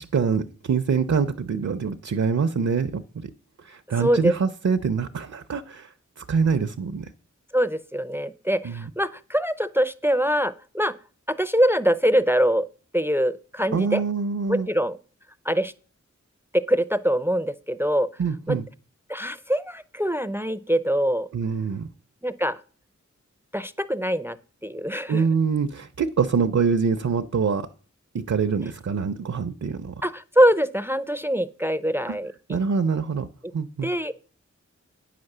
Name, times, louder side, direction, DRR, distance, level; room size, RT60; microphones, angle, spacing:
voice 1, 0.0-3.3 3.6-7.1 8.6-8.9 13.7-14.7 18.2-18.7 21.3-21.9 25.1-27.7 28.1-29.9 32.5-33.3 33.5-33.9, right 5 dB, 60° right, 0.6 m, -25 dB
voice 2, 4.0-4.3 7.5-10.9 11.3-12.7 12.9-14.0 14.5-15.0 15.4-15.7 16.5-18.1 18.5-18.6 19.1-21.3 22.2-22.6 23.5-24.4 24.6-25.2 30.0-32.6 33.8-34.2, equal, 10° right, 0.5 m, -23 dB
9.3 x 5.8 x 6.6 m
wide cardioid pair, 65°, 29 cm